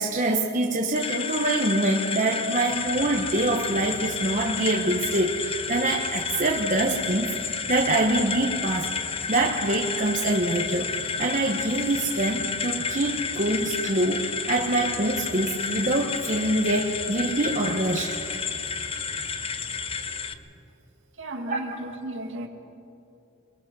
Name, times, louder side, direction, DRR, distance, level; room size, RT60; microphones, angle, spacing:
voice 1, 0.0-8.9 9.3-10.9 11.2-18.2 21.5-21.6, right 2 dB, 40° right, 0 dB, 1.2 m, -25 dB
sound 1, 0.9-20.3, left 5 dB, 25° left, 0.7 m, -31 dB
sound 2, 2.7-20.2, equal, 80° left, 5.7 m, -45 dB
voice 2, 21.2-22.5, right 1 dB, 65° right, 4 dB, 1.9 m, -34 dB
23.5 x 23.0 x 5.5 m, 2.7 s
head